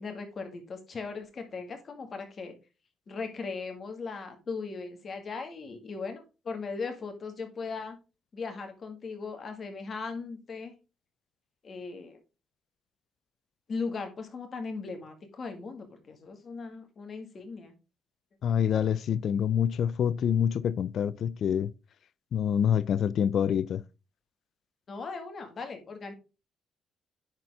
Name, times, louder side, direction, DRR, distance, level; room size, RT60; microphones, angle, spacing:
voice 1, 0.0-2.6 3.1-8.0 8.3-10.7 11.6-12.2 13.7-17.7 24.9-26.1, left 4 dB, 45° left, 2.0 m, -38 dB
voice 2, 18.4-21.7 22.3-23.8, left 8 dB, 65° left, 0.4 m, -26 dB
10.5 x 4.3 x 3.6 m
cardioid pair, 90°, 0 cm